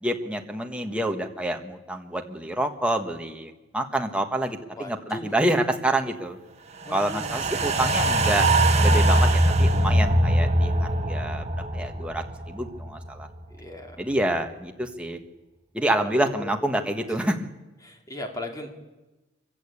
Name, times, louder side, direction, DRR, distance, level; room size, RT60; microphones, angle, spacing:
voice 1, 0.0-6.4 6.9-8.5 8.8-11.4 11.7-13.3 14.0-15.2 15.7-17.5, right 1 dB, 5° right, 4 dB, 1.5 m, -27 dB
voice 2, 4.8-5.3 6.9-7.8 13.5-14.1 16.0-16.5 17.2-17.3 17.8-18.7, left 1 dB, 20° left, 3 dB, 2.7 m, -38 dB
sound 1, 6.9-13.3 13.7-13.8, right 1 dB, 35° right, 1.6 m, -22 dB
24.0 x 15.5 x 8.5 m, 1.1 s
head